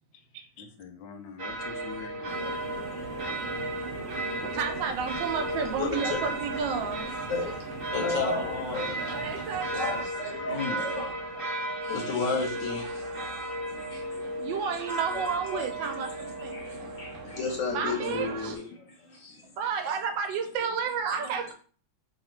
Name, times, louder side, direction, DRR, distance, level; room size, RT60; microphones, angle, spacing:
voice 1, 0.6-2.6 4.3-4.4 10.5-10.9, left 5 dB, 85° left, 6 dB, 1.3 m, -40 dB
sound 1, 1.4-18.6, right 1 dB, 50° right, 1.2 m, -35 dB
sound 2, 2.3-10.0, right 3 dB, 25° right, 1.0 m, -42 dB
voice 2, 4.5-7.1 9.1-10.1 14.4-16.6 17.7-18.6 19.6-21.5, right 6 dB, 80° right, 5 dB, 1.3 m, -31 dB
voice 3, 5.8-6.2 7.3-7.6 7.9-9.2 9.7-11.1 11.8-14.5 15.1-19.5, left 4 dB, 60° left, 1 dB, 0.9 m, -34 dB
3.2 x 2.4 x 4.4 m, 0.43 s
omnidirectional pair, 2.0 m